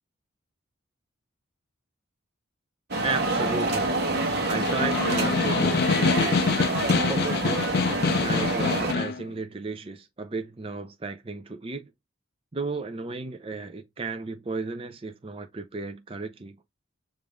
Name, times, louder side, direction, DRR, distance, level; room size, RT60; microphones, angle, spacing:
sound 1, 2.9-8.9, right 2 dB, 50° right, 1.0 m, -27 dB
voice 1, 3.0-4.0 4.5-6.5 7.1-7.7 8.2-11.9 12.5-16.6, right 3 dB, 25° right, 0.5 m, -34 dB
Snare drum, 4.2-9.2, left 5 dB, 50° left, 0.3 m, -26 dB
5.2 x 2.6 x 3.3 m
head